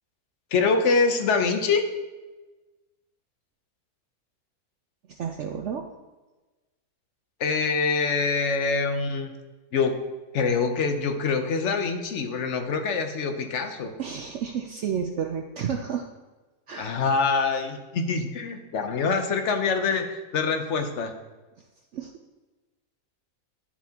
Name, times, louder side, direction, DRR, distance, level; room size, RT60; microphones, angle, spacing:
voice 1, 0.5-1.8 7.4-9.3 9.7-10.0 10.3-13.9 16.8-21.1, left 4 dB, 55° left, 6 dB, 1.0 m, -25 dB
voice 2, 5.1-5.9 14.0-16.1 16.7-17.1 21.9-22.1, right 7 dB, 65° right, 3 dB, 0.7 m, -31 dB
10.5 x 7.1 x 2.9 m, 1.2 s
omnidirectional pair, 1.6 m